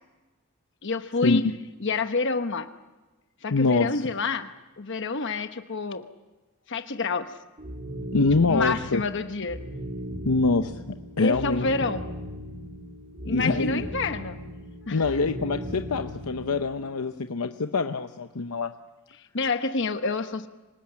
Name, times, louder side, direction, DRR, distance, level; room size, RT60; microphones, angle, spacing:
voice 1, 0.8-1.5 1.8-2.7 3.4-4.5 4.8-6.0 6.7-7.3 8.4-9.6 11.2-12.0 13.2-14.4 14.9-15.1 19.3-20.5, left 3 dB, 55° left, 8 dB, 1.0 m, -28 dB
voice 2, 3.5-4.0 8.1-9.0 10.2-11.7 13.3-13.8 14.9-18.7, left 3 dB, 85° left, 8 dB, 0.8 m, -25 dB
sound 1, 7.6-16.8, equal, 40° right, 3.3 m, -37 dB
25.0 x 19.5 x 8.8 m, 1.2 s
head